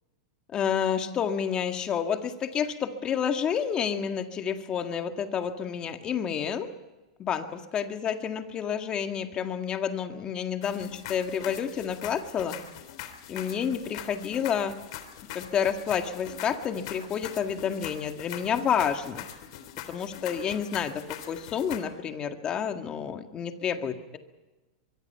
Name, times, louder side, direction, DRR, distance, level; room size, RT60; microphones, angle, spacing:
voice 1, 0.5-6.7 7.2-12.6 13.3-14.7 15.3-19.2 19.9-24.2, left 8 dB, 25° left, 6 dB, 1.9 m, -29 dB
sound 1, 10.6-21.8, left 11 dB, 60° left, 3.3 m, -42 dB
23.5 x 23.0 x 5.7 m, 1.1 s
supercardioid pair, 145°, 4 cm